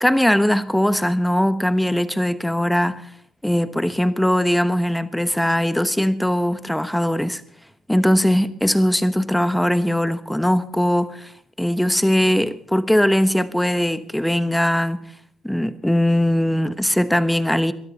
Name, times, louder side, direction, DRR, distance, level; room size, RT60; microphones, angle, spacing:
voice 1, 0.0-3.1 3.4-7.4 7.9-11.3 11.6-15.0 15.4-17.7, equal, 5° left, 1.1 m, -20 dB
22.5 x 13.0 x 4.0 m
cardioid pair, 90°, 0 cm